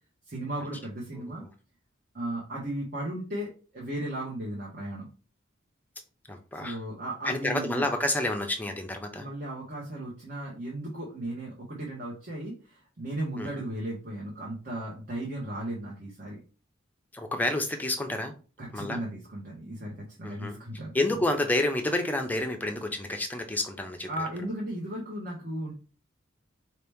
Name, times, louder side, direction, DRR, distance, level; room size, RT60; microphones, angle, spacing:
voice 1, 0.3-1.4 2.1-5.1 6.6-7.9 9.1-16.4 18.6-20.9 24.1-25.7, right 1 dB, 45° right, -4 dB, 1.1 m, -36 dB
voice 2, 6.3-6.8 7.2-9.3 13.4-13.6 17.1-18.3 18.7-19.0 20.2-20.6 20.9-24.1, left 1 dB, 10° left, 4 dB, 0.5 m, -29 dB
4.4 x 2.9 x 3.5 m, 0.35 s
head